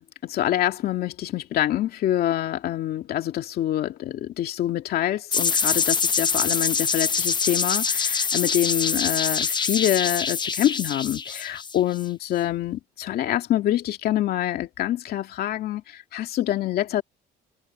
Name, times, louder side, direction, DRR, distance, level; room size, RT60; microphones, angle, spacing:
voice 1, 0.0-17.0, left 12 dB, 65° left, 2.4 m, -26 dB
sound 1, 5.3-12.0, left 5 dB, 25° left, 0.9 m, -25 dB
cardioid pair, 110°, 17 cm